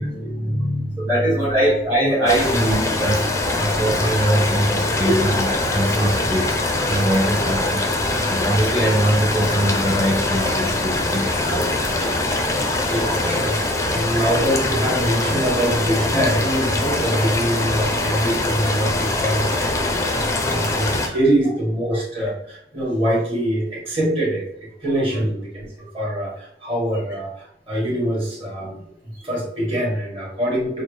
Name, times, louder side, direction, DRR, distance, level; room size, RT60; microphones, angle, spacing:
voice 1, 0.0-1.4 5.1-5.2 12.9-25.7 25.9-30.8, right 1 dB, 30° right, -4 dB, 1.5 m, -24 dB
voice 2, 1.0-12.2 12.8-13.4 14.0-14.1 17.8-17.9 19.5-19.7 20.5-20.6 25.1-25.3, right 1 dB, 15° right, -6 dB, 0.7 m, -22 dB
sound 1, 2.3-21.1, left 2 dB, 15° left, 0.4 m, -23 dB
6.1 x 2.1 x 3.2 m, 0.71 s
head